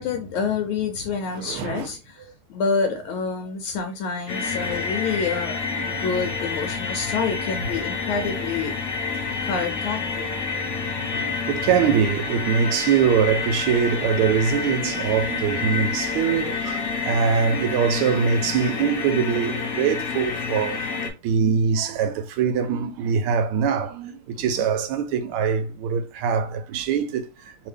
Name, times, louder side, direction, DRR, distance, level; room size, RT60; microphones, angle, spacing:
voice 1, 0.0-2.2 2.5-5.6 5.9-8.7 9.4-10.2 24.4-24.7, left 5 dB, 80° left, 1.4 m, -27 dB
voice 2, 1.3-1.9 4.6-4.8 5.7-6.2 8.4-8.5 11.1-27.7, right 7 dB, 80° right, 1.4 m, -23 dB
sound 1, 4.3-21.1, left 5 dB, 55° left, 1.1 m, -28 dB
sound 2, 4.5-12.0, left 4 dB, 60° right, 0.9 m, -40 dB
3.3 x 2.8 x 3.2 m
omnidirectional pair, 2.3 m